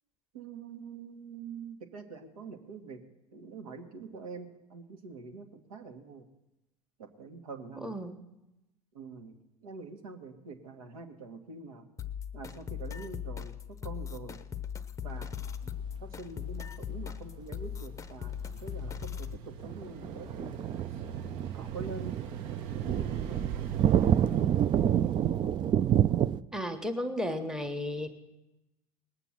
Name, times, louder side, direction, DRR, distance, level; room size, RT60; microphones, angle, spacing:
voice 1, 0.3-3.0 3.3-6.2 7.0-8.0 8.9-11.9 12.3-14.4 15.0-20.6 20.9-21.0 21.5-22.2 22.9-23.6, right 4 dB, 70° right, 5 dB, 1.6 m, -45 dB
voice 2, 7.8-8.2 26.5-28.1, left 1 dB, 5° right, 7 dB, 1.3 m, -34 dB
sound 1, 12.0-19.4, left 8 dB, 15° left, 0.8 m, -39 dB
sound 2, 17.6-17.7 19.6-26.4, right 10 dB, 25° right, 0.4 m, -28 dB
Engine, 18.0-26.1, right 8 dB, 50° right, 1.1 m, -43 dB
19.5 x 8.3 x 5.8 m, 0.94 s
figure-of-eight pair, 75°, 19 cm